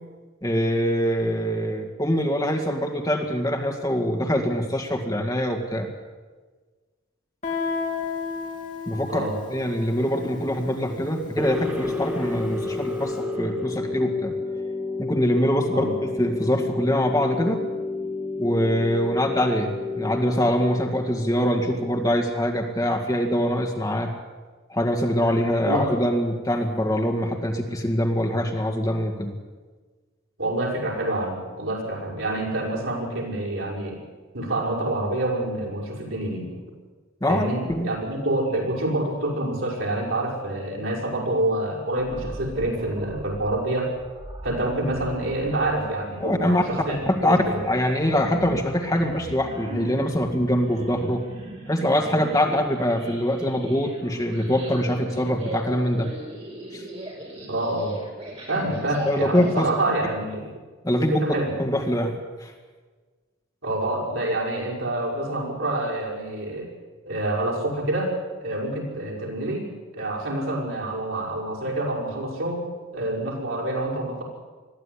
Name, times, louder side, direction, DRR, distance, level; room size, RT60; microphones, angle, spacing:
voice 1, 0.4-5.9 8.9-9.2 9.5-14.3 15.0-15.9 16.2-17.6 18.4-24.1 24.7-29.3 37.2-37.9 46.2-51.2 51.7-56.1 56.7-56.9 59.1-59.7 60.8-61.2 61.6-62.1 62.4-62.5, equal, 15° left, 2 dB, 2.0 m, -24 dB
Guitar, 7.4-12.9, left 5 dB, 35° left, 3.2 m, -34 dB
voice 2, 9.1-9.4 15.7-15.9 25.6-25.9 30.4-34.0 34.3-36.6 37.3-43.9 44.4-47.6 57.4-57.9 58.5-60.4 61.1-61.5 63.6-66.7 67.0-68.2 68.4-72.6 72.9-74.2, right 1 dB, 70° right, -2 dB, 6.0 m, -27 dB
sound 1, 11.4-22.2, left 3 dB, 10° right, 1.9 m, -31 dB
sound 2, 42.0-59.7, right 1 dB, 30° right, 5.3 m, -39 dB
21.5 x 14.0 x 9.9 m, 1.4 s
head